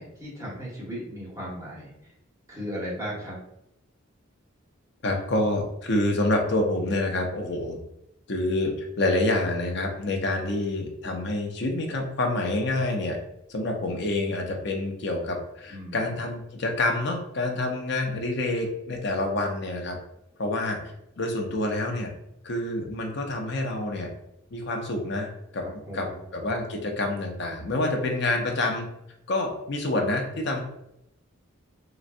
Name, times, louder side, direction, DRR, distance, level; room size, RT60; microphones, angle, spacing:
voice 1, 0.0-2.1 2.5-3.4 15.7-16.1 25.6-26.2, equal, 15° right, -7 dB, 1.1 m, -36 dB
voice 2, 5.0-7.8 8.3-13.2 13.5-20.0 20.4-20.8 21.2-22.1 22.4-24.1 24.5-25.7 25.9-28.9 29.3-30.6, left 2 dB, 55° left, 2 dB, 0.6 m, -27 dB
3.9 x 2.2 x 2.5 m, 0.80 s
head